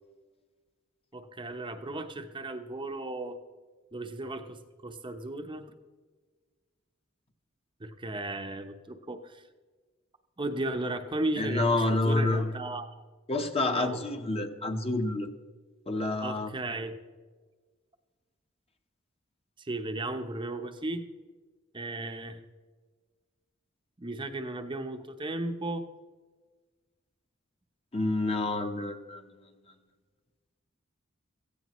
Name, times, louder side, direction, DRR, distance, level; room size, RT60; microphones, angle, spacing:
voice 1, 1.1-3.4 3.9-5.8 7.8-9.4 10.4-11.6 11.9-12.9 13.7-14.0 16.2-17.0 19.6-21.1 21.7-22.4 24.0-25.9, right 2 dB, 25° right, 5 dB, 0.8 m, -35 dB
voice 2, 11.4-12.5 13.3-15.3 15.9-16.5 27.9-29.2, left 2 dB, 30° left, 5 dB, 1.1 m, -28 dB
17.0 x 15.0 x 3.1 m, 1.4 s
head